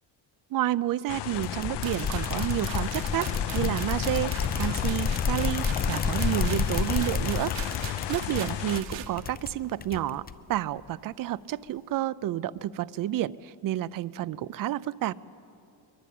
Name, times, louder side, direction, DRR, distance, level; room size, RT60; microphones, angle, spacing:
voice 1, 0.5-7.5 8.1-10.2 10.5-15.1, right 13 dB, 50° right, 16 dB, 0.5 m, -30 dB
sound 1, 1.1-8.8, left 13 dB, 65° left, 0.8 m, -35 dB
sound 2, 1.3-10.6, left 6 dB, 20° left, 0.5 m, -30 dB
sound 3, 1.8-9.1, right 11 dB, 80° right, 1.8 m, -42 dB
23.5 x 23.0 x 8.5 m, 2.8 s
cardioid pair, 165°, 44 cm